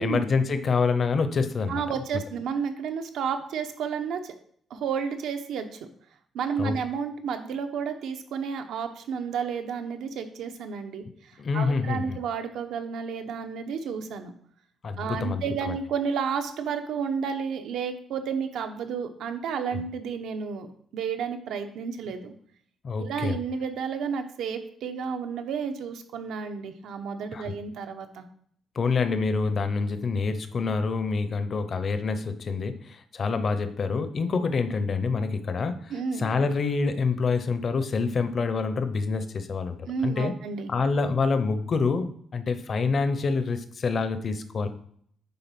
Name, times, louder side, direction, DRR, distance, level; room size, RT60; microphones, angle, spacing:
voice 1, 0.0-1.8 6.6-6.8 11.4-12.2 14.8-15.8 19.7-19.8 22.8-23.4 27.3-27.5 28.7-39.8 40.0-40.3 40.7-44.7, left 4 dB, 35° left, 10 dB, 0.7 m, -27 dB
voice 2, 1.7-4.3 4.7-5.8 6.3-11.0 11.5-14.3 15.0-20.7 20.9-22.3 23.0-28.2 35.9-36.3 39.9-40.7, right 6 dB, 75° right, 6 dB, 1.0 m, -31 dB
9.5 x 3.8 x 5.9 m, 0.62 s
cardioid pair, 175°, 0 cm